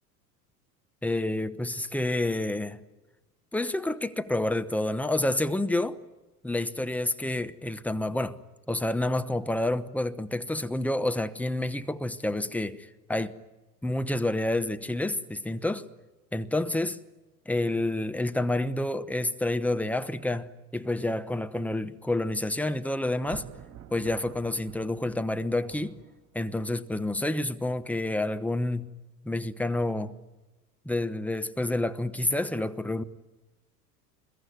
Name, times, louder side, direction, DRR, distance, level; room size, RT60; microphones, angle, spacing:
voice 1, 1.0-2.8 3.5-6.0 6.4-8.4 8.7-13.4 13.8-15.9 16.3-17.0 17.5-23.5 23.9-26.0 26.3-28.9 29.2-30.2 30.8-33.0, left 1 dB, 5° left, 1.0 m, -29 dB
Thunder, 23.1-26.5, right 11 dB, 40° right, 4.2 m, -47 dB
25.5 x 22.0 x 9.3 m
figure-of-eight pair, 80°, 47 cm